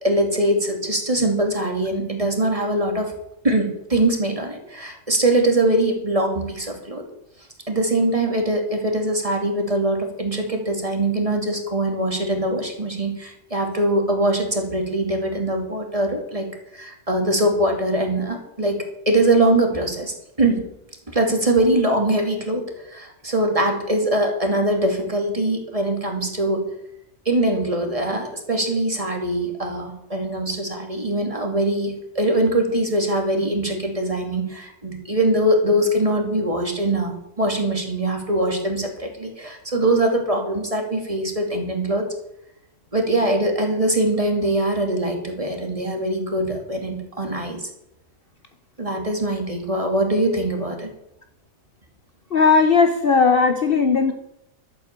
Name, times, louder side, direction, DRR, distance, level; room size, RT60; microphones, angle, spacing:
voice 1, 0.0-3.1 3.4-7.0 7.7-16.5 16.7-20.6 21.1-26.6 27.3-42.1 42.9-47.6 48.8-50.9, right 1 dB, 25° right, 2.6 m, -22 dB
voice 2, 52.3-54.1, left 5 dB, 45° left, 1.0 m, -17 dB
12.0 x 8.9 x 8.2 m
omnidirectional pair, 1.4 m